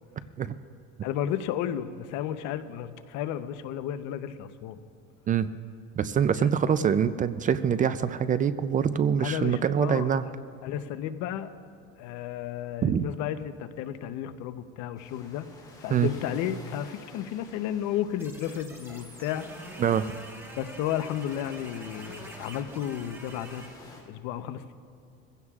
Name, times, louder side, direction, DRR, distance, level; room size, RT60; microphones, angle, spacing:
voice 1, 1.0-4.8 6.3-6.7 9.2-10.3 10.6-11.5 12.0-15.4 15.8-19.4 20.6-23.6 24.1-24.7, left 10 dB, 75° left, 11 dB, 0.8 m, -33 dB
voice 2, 6.0-10.3 12.8-13.1 15.9-16.1 19.8-20.1, right 8 dB, 30° right, 13 dB, 0.4 m, -24 dB
sound 1, 15.0-24.0, left 2 dB, 15° left, 3.3 m, -51 dB
sound 2, 18.2-23.7, right 1 dB, 10° right, 1.5 m, -46 dB
22.0 x 16.0 x 2.4 m, 2.5 s
cardioid pair, 130°, 29 cm